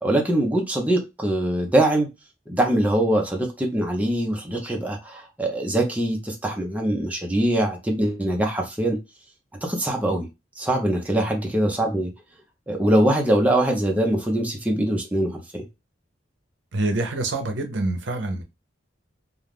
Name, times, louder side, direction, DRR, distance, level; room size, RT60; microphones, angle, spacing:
voice 1, 0.0-2.1 2.5-9.0 9.6-10.3 10.6-12.1 12.7-15.6, right 1 dB, 10° right, 0.5 m, -23 dB
voice 2, 16.7-18.4, right 2 dB, 70° right, 0.6 m, -26 dB
2.4 x 2.3 x 3.3 m
head